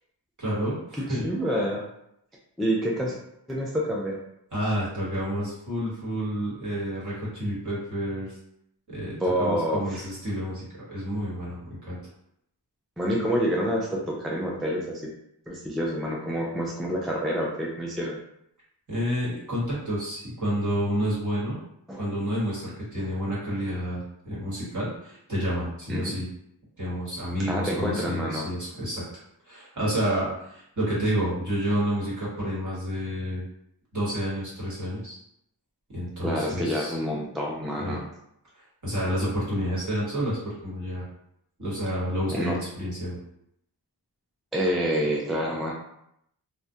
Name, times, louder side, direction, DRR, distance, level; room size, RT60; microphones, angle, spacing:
voice 1, 0.4-1.3 4.5-8.4 8.9-12.0 18.9-21.6 22.0-26.3 26.8-29.0 29.4-33.4 33.9-35.2 35.9-37.0 37.8-38.0 38.5-41.1 41.6-43.2, equal, 45° right, -7 dB, 1.2 m, -29 dB
voice 2, 1.1-1.8 2.6-3.2 3.5-4.2 9.2-9.9 13.0-15.1 15.5-18.2 21.9-22.0 25.9-26.1 27.5-28.5 36.2-38.0 42.3-42.5 44.5-45.7, equal, ahead, -3 dB, 0.3 m, -27 dB
2.3 x 2.1 x 2.7 m, 0.76 s
wide cardioid pair, 75°, 41 cm